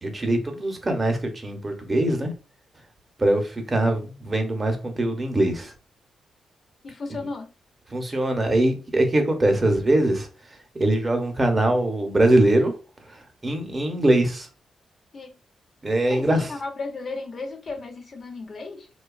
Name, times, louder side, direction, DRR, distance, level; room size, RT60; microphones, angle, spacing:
voice 1, 0.0-2.3 3.2-5.7 7.9-12.7 13.0-14.5 15.8-16.5, right 1 dB, 25° right, 0.7 m, -22 dB
voice 2, 6.8-7.5 15.1-15.4 16.1-18.9, left 3 dB, 45° left, 0.5 m, -34 dB
2.8 x 2.2 x 2.3 m
cardioid pair, 95°, 0 cm